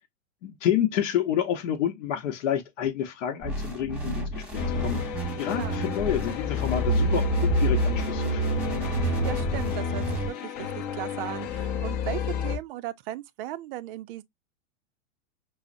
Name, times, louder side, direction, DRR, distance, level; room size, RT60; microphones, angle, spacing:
voice 1, 0.4-8.7, left 10 dB, 65° left, 0.9 m, -29 dB
sound 1, 3.4-10.3, right 3 dB, 5° right, 1.1 m, -28 dB
sound 2, 4.5-12.6, left 8 dB, 35° left, 0.7 m, -31 dB
voice 2, 9.0-14.2, right 14 dB, 45° right, 0.4 m, -37 dB
5.5 x 2.0 x 2.5 m
hypercardioid pair, 125°, 39 cm